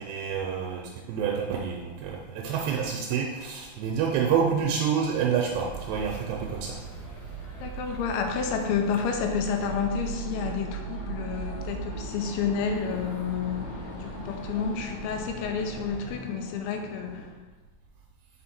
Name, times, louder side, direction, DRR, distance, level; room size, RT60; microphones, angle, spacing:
voice 1, 0.0-6.8, right 7 dB, 85° right, 0 dB, 2.6 m, -28 dB
sound 1, 5.5-16.2, right 6 dB, 40° left, 2.2 m, -39 dB
voice 2, 7.6-17.3, left 6 dB, 85° left, 4 dB, 3.0 m, -30 dB
sound 2, 8.2-17.3, left 3 dB, 70° left, 2.5 m, -43 dB
6.4 x 4.6 x 4.3 m, 1.3 s
omnidirectional pair, 5.2 m